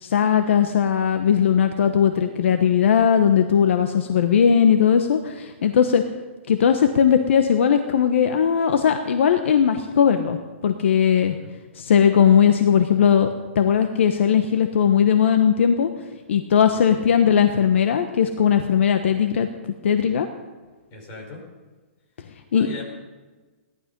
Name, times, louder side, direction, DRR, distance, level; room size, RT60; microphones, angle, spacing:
voice 1, 0.0-6.0 6.5-10.4 10.6-11.3 11.7-13.3 13.5-15.9 16.3-20.3 22.5-22.7, left 8 dB, 65° left, 7 dB, 1.1 m, -18 dB
voice 2, 20.9-21.4 22.5-22.8, left 3 dB, 30° left, -1 dB, 4.6 m, -37 dB
17.5 x 11.5 x 5.3 m, 1.3 s
hypercardioid pair, 160°, 7 cm